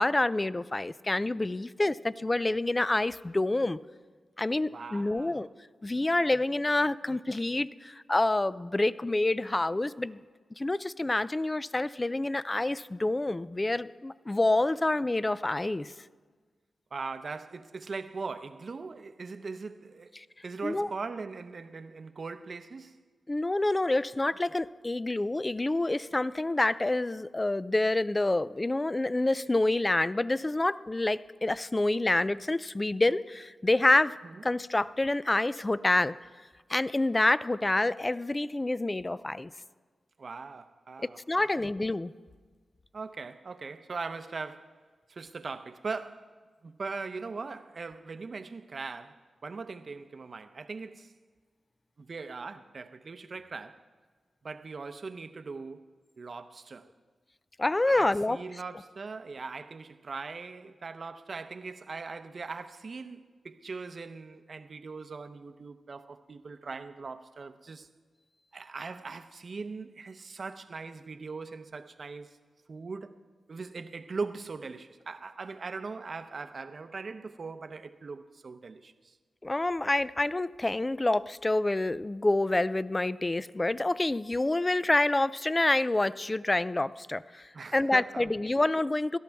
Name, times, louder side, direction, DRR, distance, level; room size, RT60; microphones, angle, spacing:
voice 1, 0.0-3.8 4.4-5.5 5.8-10.2 10.6-15.9 20.2-20.3 20.6-20.9 23.3-34.2 34.4-36.2 36.7-39.5 41.0-42.1 57.6-58.4 79.4-89.2, left 2 dB, 25° left, 0.4 m, -27 dB
voice 2, 4.7-5.5 16.9-23.0 34.2-34.4 40.2-41.2 42.9-44.8 45.1-46.3 46.6-51.1 52.0-53.8 54.4-55.9 56.2-56.9 57.9-67.9 68.5-72.4 72.7-73.1 73.5-79.2 87.5-88.5, right 4 dB, 55° right, 0.7 m, -40 dB
17.5 x 13.0 x 3.5 m
cardioid pair, 55°, 0 cm